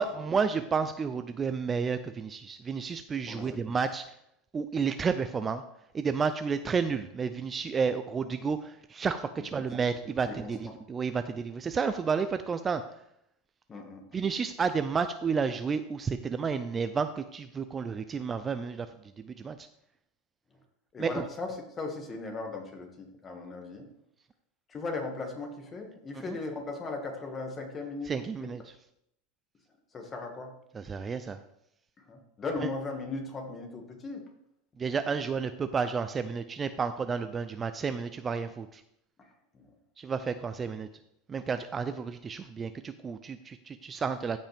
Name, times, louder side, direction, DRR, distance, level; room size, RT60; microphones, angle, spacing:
voice 1, 0.0-4.0 4.5-5.6 5.9-12.8 14.1-18.9 19.2-19.6 21.0-21.1 26.3-26.4 28.1-28.6 30.7-31.4 34.8-38.8 40.0-40.9 41.3-44.4, right 5 dB, 25° right, 10 dB, 0.4 m, -31 dB
voice 2, 3.3-3.6 9.4-9.5 10.2-10.7 13.7-14.2 20.9-21.5 21.8-23.9 24.7-28.1 29.9-30.5 32.1-34.2 39.2-39.7, left 3 dB, 25° left, 3 dB, 2.0 m, -38 dB
14.0 x 5.3 x 3.5 m, 0.77 s
supercardioid pair, 120°, 0 cm